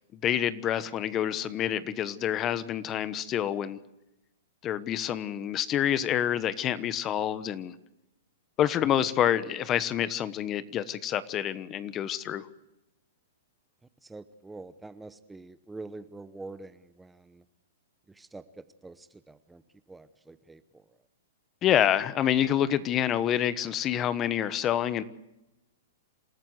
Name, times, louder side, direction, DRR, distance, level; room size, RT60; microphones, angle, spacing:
voice 1, 0.1-3.8 4.6-7.7 8.6-12.5 21.6-25.0, left 10 dB, 30° left, 15 dB, 1.2 m, -27 dB
voice 2, 14.0-17.4 18.1-19.6 19.9-20.6, right 3 dB, 10° right, 12 dB, 0.9 m, -45 dB
27.5 x 13.5 x 8.1 m, 0.91 s
hypercardioid pair, 130°, 0 cm